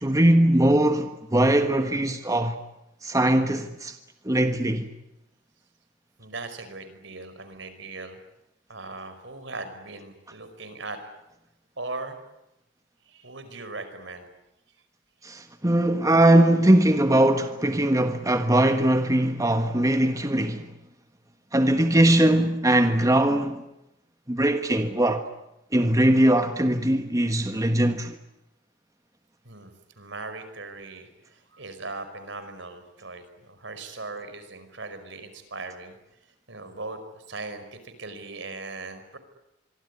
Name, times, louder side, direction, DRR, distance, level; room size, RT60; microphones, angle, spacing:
voice 1, 0.0-2.6 3.0-4.0 4.2-4.9 15.2-20.7 21.5-23.6 24.3-25.3 25.7-28.2, right 1 dB, 15° right, 1.4 m, -21 dB
voice 2, 6.2-8.2 8.7-11.1 11.8-12.2 13.0-14.3 29.4-36.0 36.5-39.2, right 3 dB, 65° right, 5.2 m, -39 dB
26.0 x 23.5 x 9.7 m
head